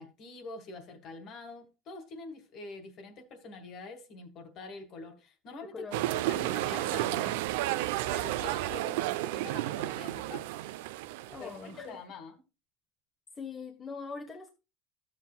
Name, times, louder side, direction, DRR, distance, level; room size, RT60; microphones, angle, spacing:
voice 1, 0.0-7.4 8.1-10.5 11.4-12.4, left 3 dB, 40° left, 1.7 m, -45 dB
sound 1, 5.9-11.9, right 16 dB, 85° right, 0.5 m, -32 dB
voice 2, 11.3-11.9 13.4-14.5, left 5 dB, 20° left, 0.7 m, -42 dB
13.0 x 7.5 x 2.2 m
cardioid pair, 155°, 0 cm